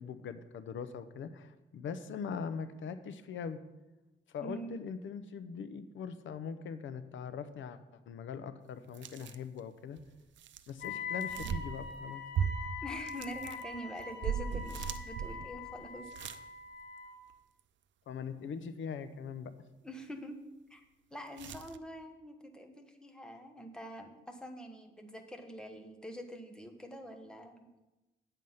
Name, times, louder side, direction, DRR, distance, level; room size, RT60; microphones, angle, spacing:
voice 1, 0.0-3.6 4.3-10.0 10.7-12.5 18.1-19.5, left 6 dB, 80° left, 12 dB, 0.7 m, -41 dB
voice 2, 4.4-4.8 12.8-16.1 19.8-20.4 20.7-20.8 21.1-27.6, equal, 5° left, 4 dB, 1.2 m, -45 dB
sound 1, 8.9-9.6 10.0-12.0 12.3-16.4 16.8-16.9 21.4-21.8, right 7 dB, 75° right, 0.6 m, -38 dB
Wind instrument woodwind instrument, 10.8-17.2, left 5 dB, 55° left, 2.1 m, -43 dB
9.1 x 7.8 x 5.6 m, 1.1 s
cardioid pair, 120°, 19 cm